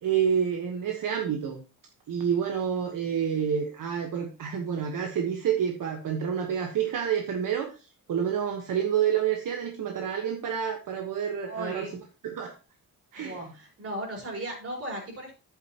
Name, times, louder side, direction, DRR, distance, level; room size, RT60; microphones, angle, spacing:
voice 1, 0.0-1.6 2.1-7.7 8.1-11.8 12.2-12.5 13.1-13.4, right 8 dB, 65° right, 3 dB, 1.4 m, -28 dB
voice 2, 11.5-12.0 13.2-15.3, right 1 dB, 45° right, -1 dB, 4.9 m, -36 dB
11.0 x 8.9 x 3.0 m, 0.33 s
wide cardioid pair, 180°, 34 cm